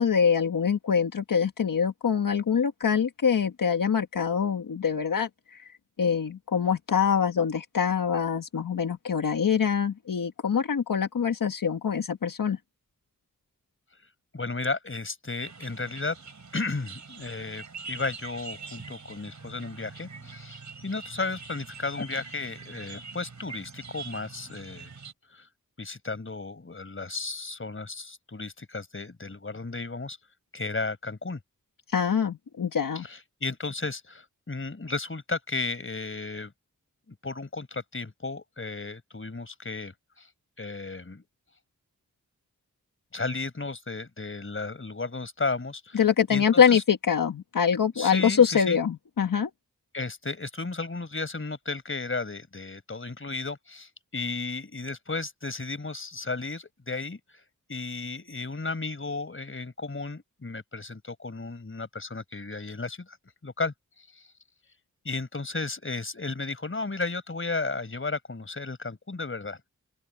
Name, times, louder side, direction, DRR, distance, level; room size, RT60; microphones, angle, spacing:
voice 1, 0.0-5.3 6.0-12.6 31.9-33.1 45.9-49.5, left 7 dB, 80° left, 1.4 m, -24 dB
voice 2, 14.3-16.2 16.5-24.9 25.3-25.5 25.8-30.2 30.5-31.4 32.9-36.5 37.1-40.3 40.6-41.2 43.1-46.0 46.3-46.8 47.9-48.8 49.9-57.2 57.7-63.2 63.4-64.3 65.0-69.6, left 3 dB, 40° left, 4.8 m, -34 dB
sound 1, 15.4-25.1, right 4 dB, 60° right, 4.8 m, -44 dB
open air
wide cardioid pair, 100°, 33 cm